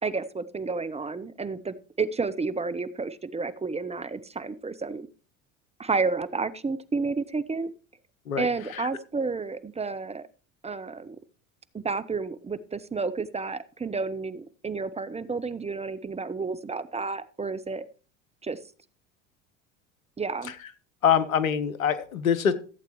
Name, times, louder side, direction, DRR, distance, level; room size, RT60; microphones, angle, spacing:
voice 1, 0.0-5.1 5.8-7.7 8.4-10.3 10.6-11.2 11.7-17.8 18.4-18.6 20.2-20.5, right 4 dB, 15° right, 14 dB, 0.8 m, -31 dB
voice 2, 21.0-22.5, left 8 dB, 90° left, 14 dB, 1.1 m, -24 dB
15.0 x 8.3 x 3.1 m, 0.38 s
hypercardioid pair, 75°, 40 cm